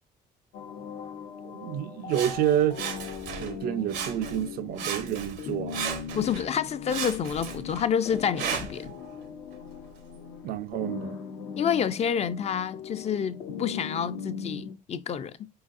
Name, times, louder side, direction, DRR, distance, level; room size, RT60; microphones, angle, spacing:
sound 1, 0.5-14.8, left 6 dB, 80° left, 0.8 m, -39 dB
voice 1, 1.4-2.8 3.3-5.8 10.4-11.2, right 11 dB, 65° right, 0.4 m, -29 dB
Sawing, 2.1-3.6 3.9-4.5 4.8-6.5 6.9-8.9 9.5-9.6, right 8 dB, 85° right, 0.9 m, -35 dB
voice 2, 6.1-8.9 11.6-15.5, left 8 dB, 40° left, 0.4 m, -28 dB
4.6 x 3.9 x 2.5 m
cardioid pair, 110°, 17 cm